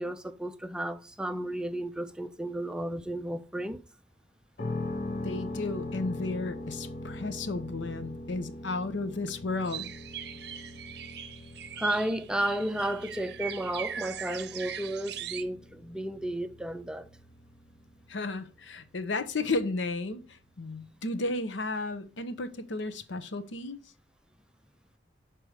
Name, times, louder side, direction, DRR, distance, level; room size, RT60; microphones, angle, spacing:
voice 1, 0.0-3.8 11.8-17.1, right 1 dB, 5° right, 0.4 m, -33 dB
sound 1, 4.6-20.4, left 2 dB, 45° left, 0.8 m, -42 dB
voice 2, 5.1-9.9 18.1-23.8, left 3 dB, 85° left, 0.8 m, -33 dB
sound 2, 9.6-15.4, right 9 dB, 60° right, 0.6 m, -40 dB
6.6 x 4.5 x 4.8 m
head